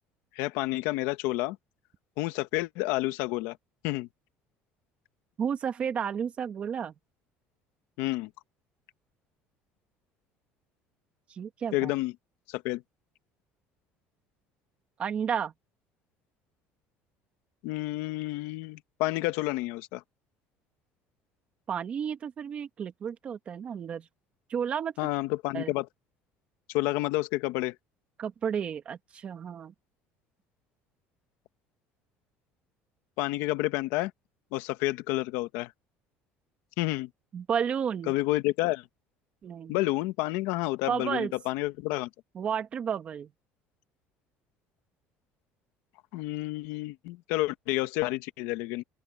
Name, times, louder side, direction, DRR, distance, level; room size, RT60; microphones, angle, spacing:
voice 1, 0.3-1.6 2.2-3.6 3.8-4.1 8.0-8.3 11.7-12.1 12.5-12.8 17.6-20.0 25.0-25.9 26.7-27.7 33.2-34.1 34.5-35.7 36.8-37.1 38.1-38.8 39.7-42.1 46.1-48.8, left 19 dB, 80° left, 1.4 m, -29 dB
voice 2, 5.4-6.9 11.3-11.9 15.0-15.5 21.7-24.1 24.5-24.9 25.5-25.7 28.2-29.7 37.3-38.1 39.4-39.8 40.9-41.3 42.3-43.3, right 7 dB, 30° right, 1.9 m, -32 dB
open air
cardioid pair, 170°, 4 cm